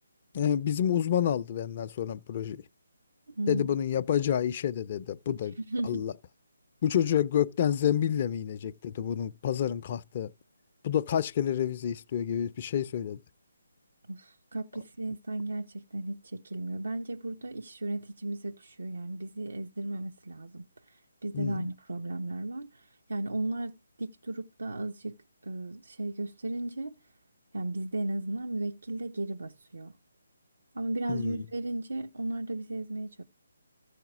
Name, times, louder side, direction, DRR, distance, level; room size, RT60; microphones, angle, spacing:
voice 1, 0.3-2.6 3.5-5.6 5.8-6.1 6.8-10.3 10.8-13.2 21.3-21.7 31.1-31.4, left 9 dB, 35° left, 0.6 m, -29 dB
voice 2, 3.3-3.7 5.6-6.1 14.1-25.2 25.4-27.0 27.5-29.9 30.7-33.2, right 2 dB, 85° right, 1.1 m, -35 dB
14.0 x 5.0 x 6.1 m
hypercardioid pair, 160°, 0 cm